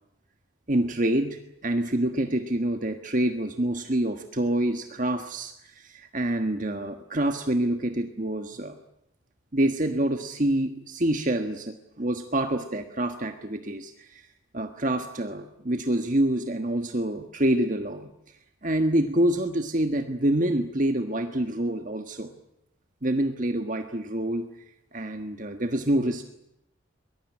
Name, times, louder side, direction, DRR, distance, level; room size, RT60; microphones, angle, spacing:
voice 1, 0.7-8.8 9.5-14.2 14.5-18.1 18.6-22.3 23.0-24.5 24.9-26.2, right 1 dB, 40° right, 6 dB, 1.6 m, -27 dB
23.0 x 21.0 x 9.9 m, 0.81 s
head